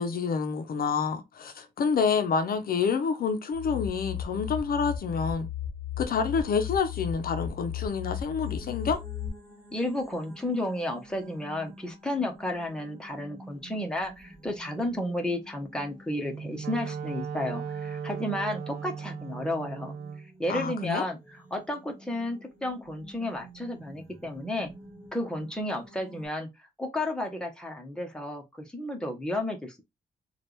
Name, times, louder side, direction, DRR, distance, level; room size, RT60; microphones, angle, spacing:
voice 1, 0.0-5.5 6.0-9.0 20.5-21.0, left 5 dB, 70° left, 0.7 m, -28 dB
sound 1, 3.5-9.3, left 10 dB, 40° right, 1.6 m, -35 dB
sound 2, 8.4-26.3, right 1 dB, 10° right, 1.8 m, -50 dB
voice 2, 9.7-20.0 20.4-21.2 21.5-24.7 25.1-26.5 26.8-29.8, left 1 dB, 5° left, 1.0 m, -32 dB
Wind instrument woodwind instrument, 16.1-20.3, right 6 dB, 80° right, 0.4 m, -37 dB
4.4 x 2.4 x 3.2 m
wide cardioid pair, 120°, 16 cm